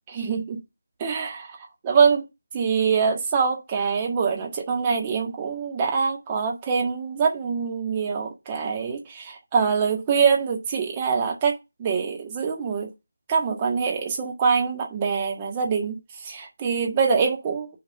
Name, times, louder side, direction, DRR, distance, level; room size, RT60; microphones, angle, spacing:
voice 1, 0.1-0.6 1.0-1.6 1.8-2.2 2.5-12.9 13.3-17.7, right 5 dB, 20° right, 1.6 m, -24 dB
5.8 x 4.7 x 6.2 m
figure-of-eight pair, 160°, 0 cm